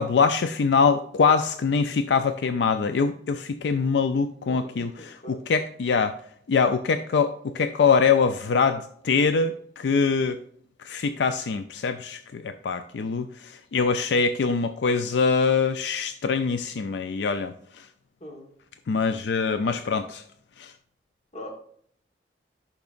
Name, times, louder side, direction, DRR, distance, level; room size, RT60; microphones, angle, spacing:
voice 1, 0.0-6.2 6.5-10.4 10.8-17.9 18.9-20.2 20.6-20.7, left 5 dB, 75° left, 10 dB, 0.4 m, -24 dB
voice 2, 4.5-5.4 18.2-18.5 21.3-21.5, left 1 dB, 40° left, 2 dB, 1.4 m, -41 dB
10.5 x 5.9 x 2.5 m, 0.64 s
head